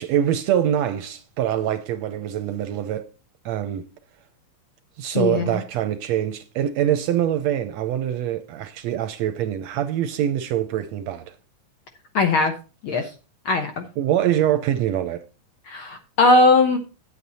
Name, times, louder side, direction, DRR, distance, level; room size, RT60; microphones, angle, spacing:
voice 1, 0.0-3.1 3.4-3.9 5.0-11.3 14.0-15.2, right 11 dB, 80° right, 1.6 m, -24 dB
voice 2, 5.1-5.5 12.1-12.5 12.8-13.1 13.4-13.8 15.7-16.8, left 2 dB, 60° left, 1.4 m, -19 dB
9.1 x 8.5 x 4.1 m
omnidirectional pair, 3.5 m